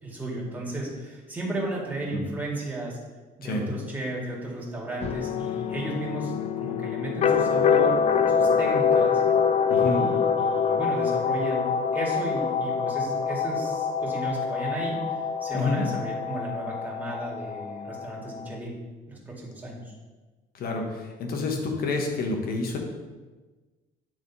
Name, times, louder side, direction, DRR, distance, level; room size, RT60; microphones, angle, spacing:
voice 1, 0.0-3.0 3.4-8.0 8.3-9.2 9.7-15.0 15.4-18.8 19.1-19.9, right 2 dB, 10° right, -4 dB, 2.1 m, -34 dB
sound 1, 5.0-18.6, left 6 dB, 40° left, 0.4 m, -25 dB
voice 2, 9.7-10.1 15.5-15.8 20.5-22.8, left 3 dB, 60° left, 2 dB, 1.3 m, -28 dB
9.2 x 3.5 x 4.1 m, 1.3 s
cardioid pair, 110°, 17 cm